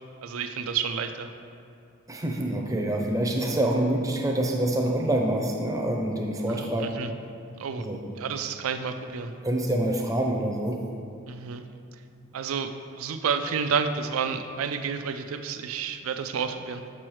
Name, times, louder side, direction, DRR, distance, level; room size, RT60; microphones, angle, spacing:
voice 1, 0.2-1.3 6.5-7.1 7.6-7.9 8.2-9.3 11.3-11.6 12.3-16.8, right 6 dB, 70° right, 8 dB, 0.4 m, -30 dB
voice 2, 2.1-6.9 7.8-8.0 9.4-10.8, right 1 dB, 15° right, 1 dB, 0.6 m, -26 dB
6.2 x 6.1 x 3.1 m, 2.5 s
head